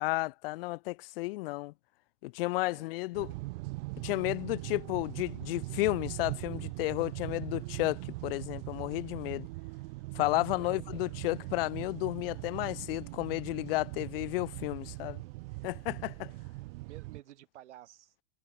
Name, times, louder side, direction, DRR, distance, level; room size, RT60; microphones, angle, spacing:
voice 1, 0.0-1.7 2.2-3.3 4.0-9.5 10.1-15.2 15.6-16.3, left 21 dB, 55° left, 0.6 m, -32 dB
sound 1, 3.1-17.2, right 24 dB, 55° right, 4.2 m, -41 dB
voice 2, 10.4-11.4 16.1-16.2 16.8-18.1, right 13 dB, 80° right, 7.3 m, -54 dB
supercardioid pair, 150°, 35 cm